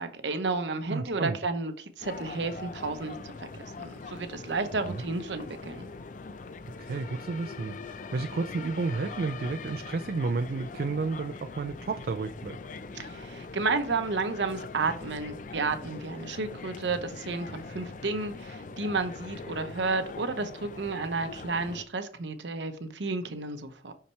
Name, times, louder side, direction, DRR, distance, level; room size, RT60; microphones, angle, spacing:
voice 1, 0.0-5.9 12.9-23.9, right 3 dB, 90° right, 0.9 m, -32 dB
voice 2, 0.9-1.4 4.9-5.0 6.8-12.6, right 4 dB, 55° right, 0.4 m, -32 dB
sound 1, 2.0-21.8, left 4 dB, 45° left, 0.4 m, -42 dB
5.8 x 5.6 x 3.2 m
head